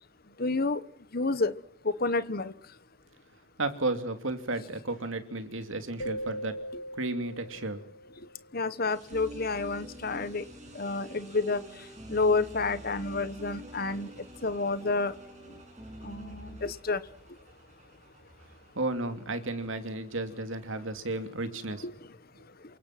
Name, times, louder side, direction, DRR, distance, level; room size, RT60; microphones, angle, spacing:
voice 1, 0.4-0.8 1.1-1.5 1.8-2.5 8.5-10.4 10.7-11.6 12.1-14.1 14.4-15.1 16.0-17.0 21.8-21.9, left 3 dB, 45° left, 14 dB, 1.1 m, -29 dB
voice 2, 3.6-6.6 7.0-7.8 18.7-21.8, right 2 dB, 65° right, 8 dB, 2.6 m, -33 dB
sound 1, 6.0-8.6, equal, 65° left, 1.2 m, -40 dB
sound 2, 8.9-20.9, right 3 dB, 35° right, 7.1 m, -57 dB
sound 3, 9.1-16.7, right 1 dB, 20° right, 3.4 m, -46 dB
28.0 x 24.5 x 5.9 m, 0.62 s
head